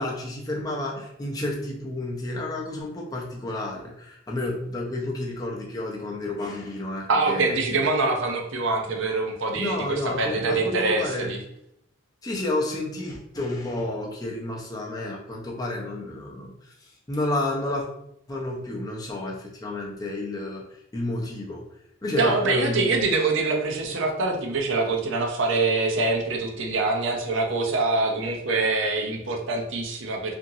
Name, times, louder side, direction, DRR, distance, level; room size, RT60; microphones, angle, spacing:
voice 1, 0.0-7.8 9.5-11.3 12.2-17.9 18.3-20.6 20.9-21.6 22.0-22.9, left 2 dB, 20° left, -2 dB, 0.5 m, -31 dB
voice 2, 7.1-11.4 22.2-30.4, right 3 dB, 65° right, 2 dB, 0.5 m, -24 dB
2.8 x 2.5 x 2.6 m, 0.77 s
head